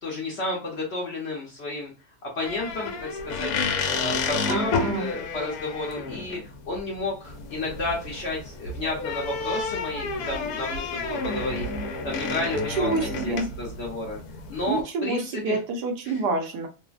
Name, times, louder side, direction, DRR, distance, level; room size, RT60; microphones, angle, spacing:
voice 1, 0.0-1.9 2.2-3.5 4.0-11.7 12.0-14.2 14.5-15.6 16.0-16.2, left 2 dB, 55° left, -2 dB, 0.8 m, -32 dB
sound 1, 2.4-14.8, left 4 dB, 75° left, 1.0 m, -31 dB
voice 2, 4.5-5.1 12.5-13.5 14.7-16.7, right 3 dB, 80° right, 3 dB, 1.3 m, -27 dB
3.2 x 2.0 x 2.3 m, 0.31 s
omnidirectional pair, 1.8 m